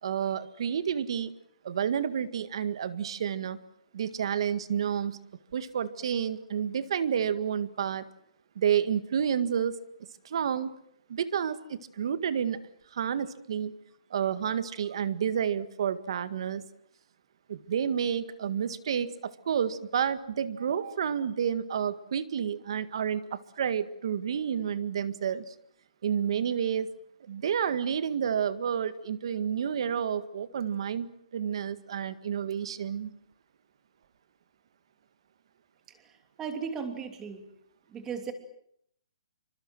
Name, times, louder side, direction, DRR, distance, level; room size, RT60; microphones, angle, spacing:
voice 1, 0.0-1.3 1.6-3.6 3.9-5.2 5.5-8.0 8.5-9.8 10.2-10.7 11.1-12.6 12.9-13.7 14.1-16.6 17.5-25.5 26.0-26.9 27.3-33.1, right 8 dB, 50° right, 14 dB, 1.8 m, -30 dB
voice 2, 36.4-37.5 37.9-38.3, right 6 dB, 10° right, 7 dB, 2.9 m, -36 dB
27.5 x 25.0 x 7.7 m, 0.71 s
hypercardioid pair, 170°, 4 cm